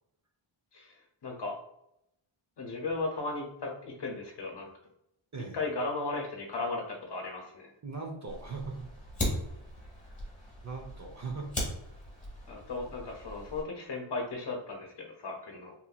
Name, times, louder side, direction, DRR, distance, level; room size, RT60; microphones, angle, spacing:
voice 1, 1.2-1.5 2.6-4.7 5.5-7.7 12.5-15.7, left 3 dB, 55° left, 1 dB, 0.8 m, -36 dB
voice 2, 7.8-8.8 10.6-11.5, right 4 dB, 35° right, 2 dB, 0.6 m, -39 dB
Fire, 8.3-13.6, left 1 dB, 15° left, 1.2 m, -38 dB
2.9 x 2.7 x 2.3 m, 0.81 s
wide cardioid pair, 90°, 50 cm